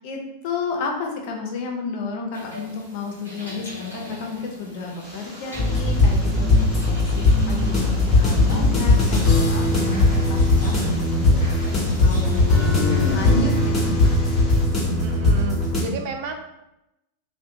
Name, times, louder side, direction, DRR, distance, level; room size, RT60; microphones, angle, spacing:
voice 1, 0.0-11.4 12.0-12.5 13.1-13.8, left 4 dB, 45° left, 1 dB, 0.5 m, -32 dB
sound 1, 2.3-13.7, equal, 90° right, 0.8 m, -40 dB
sound 2, 5.0-14.6, equal, 10° right, 0.8 m, -36 dB
sound 3, 5.5-15.8, left 2 dB, 20° left, 0.8 m, -19 dB
voice 2, 15.0-16.3, right 5 dB, 45° right, 4 dB, 0.3 m, -32 dB
2.5 x 2.1 x 2.6 m, 0.88 s
figure-of-eight pair, 90°, 0 cm